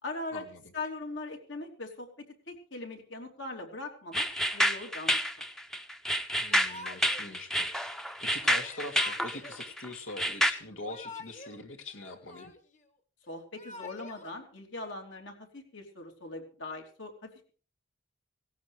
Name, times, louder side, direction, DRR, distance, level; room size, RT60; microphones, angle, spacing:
voice 1, 0.0-0.4 0.7-4.3 4.5-5.2 13.3-17.5, left 2 dB, 75° left, 2 dB, 3.3 m, -40 dB
sound 1, 4.1-10.5, equal, ahead, 0.7 m, -29 dB
voice 2, 6.4-12.5, left 2 dB, 90° left, 4 dB, 2.7 m, -43 dB
Yell / Crying sobbing, 6.5-7.3 8.6-9.6 10.7-11.6 11.9-12.8 13.4-14.3, left 3 dB, 40° left, 1.5 m, -47 dB
17.5 x 16.5 x 3.4 m, 0.39 s
head